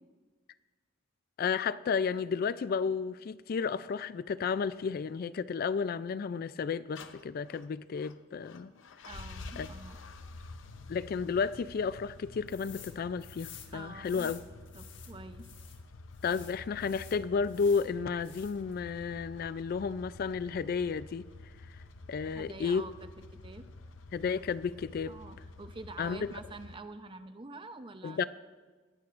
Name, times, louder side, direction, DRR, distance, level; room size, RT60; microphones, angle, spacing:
voice 1, 1.4-8.7 9.6-9.7 10.9-14.4 16.2-21.3 22.1-22.9 24.1-25.2 26.0-26.3 28.0-28.2, left 5 dB, 50° left, 0.3 m, -32 dB
sound 1, 7.0-26.8, left 3 dB, 85° left, 0.7 m, -49 dB
voice 2, 9.1-10.0 13.7-14.3 14.7-15.5 22.3-23.1 23.4-23.6 25.1-28.2, right 3 dB, 25° right, 0.7 m, -46 dB
sound 2, 12.5-12.9 13.2-15.8 16.2-17.9 18.2-18.7, left 10 dB, 70° left, 1.4 m, -51 dB
20.5 x 15.0 x 2.5 m
head